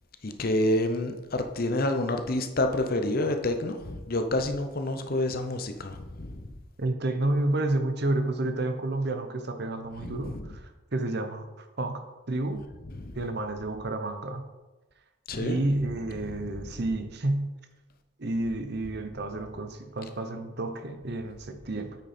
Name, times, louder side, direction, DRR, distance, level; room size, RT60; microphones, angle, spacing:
voice 1, 0.2-6.5 10.0-10.5 12.9-13.2 15.3-15.6 16.1-16.7, left 1 dB, 45° left, 6 dB, 0.8 m, -29 dB
voice 2, 6.8-12.7 13.1-14.5 15.4-17.5 18.2-22.0, right 2 dB, 55° right, 7 dB, 0.9 m, -30 dB
8.7 x 6.2 x 4.3 m, 1.1 s
head